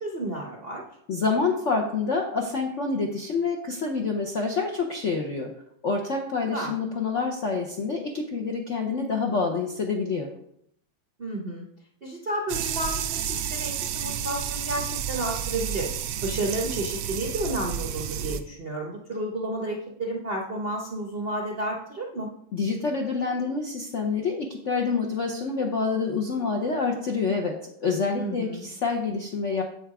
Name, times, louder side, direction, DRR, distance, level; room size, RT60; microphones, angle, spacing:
voice 1, 0.0-0.8 6.5-6.7 11.2-11.7 12.0-15.9 16.2-22.3 28.2-28.7, right 1 dB, 50° right, 0 dB, 0.7 m, -31 dB
voice 2, 1.1-5.5 5.8-10.3 22.5-29.6, left 4 dB, 60° left, 1 dB, 0.7 m, -27 dB
sound 1, 12.5-18.4, right 9 dB, 85° right, 1.5 m, -31 dB
7.9 x 5.7 x 4.8 m, 0.72 s
omnidirectional pair, 2.3 m